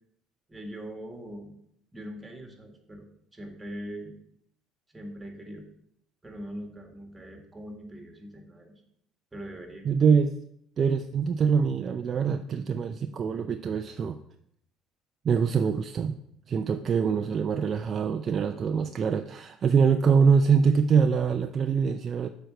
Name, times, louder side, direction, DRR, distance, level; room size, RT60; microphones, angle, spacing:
voice 1, 0.5-1.5 1.9-3.1 3.3-4.2 4.9-5.7 6.2-8.8 9.3-9.9, equal, 15° right, 3 dB, 2.0 m, -41 dB
voice 2, 9.8-10.3 10.8-14.2 15.2-16.2 16.5-22.3, right 6 dB, 45° right, 7 dB, 0.5 m, -24 dB
6.7 x 4.6 x 6.5 m, 0.72 s
supercardioid pair, 85°, 0 cm